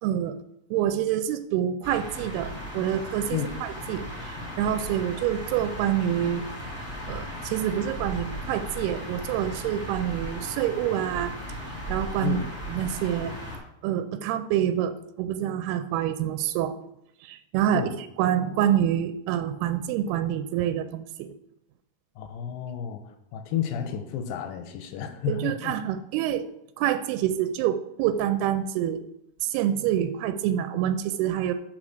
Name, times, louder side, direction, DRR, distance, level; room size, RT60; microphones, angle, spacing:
voice 1, 0.0-0.4 0.7-6.5 7.1-11.3 11.9-12.4 12.7-13.4 13.8-16.8 17.2-17.9 18.2-21.3 25.3-26.5 26.8-29.0 29.4-31.5, right 10 dB, 90° right, 10 dB, 2.6 m, -27 dB
sound 1, 1.8-13.6, equal, 5° left, 1.9 m, -37 dB
voice 2, 22.2-23.0 23.3-25.8, left 8 dB, 75° left, 7 dB, 2.3 m, -31 dB
7.2 x 4.9 x 6.5 m, 0.79 s
omnidirectional pair, 4.5 m